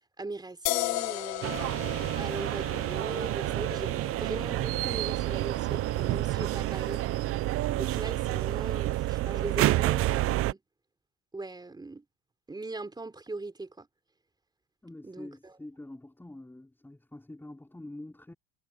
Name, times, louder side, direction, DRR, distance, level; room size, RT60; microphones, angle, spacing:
voice 1, 0.2-1.6 2.2-7.0 7.8-10.6 11.3-12.0 12.5-13.9 15.0-15.5, right 3 dB, 10° right, 3.7 m, -39 dB
sound 1, 0.7-8.0, left 22 dB, 75° left, 3.0 m, -38 dB
sound 2, 1.4-10.5, right 16 dB, 40° right, 0.5 m, -29 dB
sound 3, 2.3-9.0, right 22 dB, 85° right, 3.5 m, -47 dB
voice 2, 14.8-18.3, left 1 dB, 5° left, 4.2 m, -46 dB
cardioid pair, 125°, 38 cm